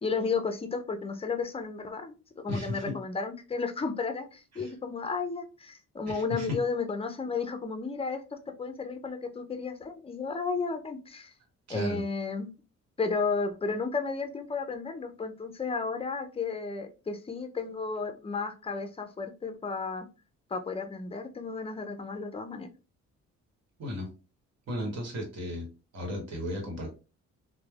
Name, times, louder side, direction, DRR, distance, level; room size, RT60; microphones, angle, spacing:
voice 1, 0.0-11.3 11.7-12.5 13.0-20.1 20.5-22.7, left 4 dB, 20° left, 7 dB, 0.4 m, -33 dB
voice 2, 2.5-3.0 4.5-4.7 6.1-6.6 11.7-12.0 23.8-24.1 24.7-25.7 25.9-26.9, left 1 dB, 60° right, 2 dB, 1.2 m, -34 dB
3.1 x 2.1 x 2.3 m, 0.32 s
cardioid pair, 90°, 30 cm